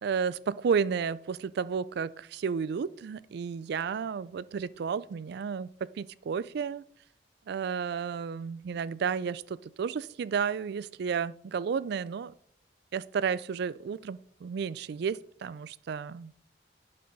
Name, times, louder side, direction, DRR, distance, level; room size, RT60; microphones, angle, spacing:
voice 1, 0.0-6.8 7.5-12.3 12.9-16.3, right 6 dB, 60° right, 0.3 m, -32 dB
11.5 x 5.5 x 4.0 m
head